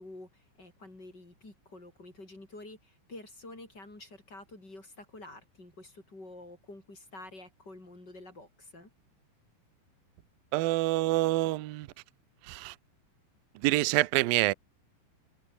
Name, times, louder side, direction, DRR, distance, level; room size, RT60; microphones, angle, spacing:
voice 1, 0.0-8.9, left 2 dB, 20° left, 6.4 m, -49 dB
voice 2, 10.5-11.9 12.5-12.8 13.6-14.5, right 18 dB, 80° right, 2.1 m, -26 dB
omnidirectional pair, 5.6 m